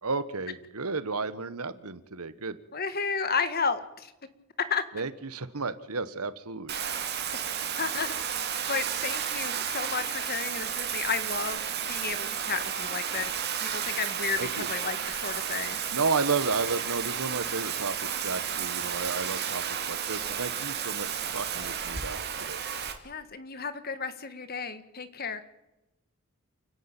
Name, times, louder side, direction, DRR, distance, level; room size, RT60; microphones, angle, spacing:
voice 1, 0.0-2.6 4.9-6.7 14.4-14.7 15.9-22.6, right 4 dB, 85° right, 14 dB, 1.4 m, -32 dB
voice 2, 2.7-4.1 4.7-4.8 7.8-8.1 8.7-15.8 23.0-25.4, left 5 dB, 45° left, 12 dB, 1.7 m, -32 dB
Bathtub (filling or washing), 6.7-22.9, right 8 dB, 45° right, 2.6 m, -32 dB
29.5 x 11.0 x 9.0 m, 0.97 s
head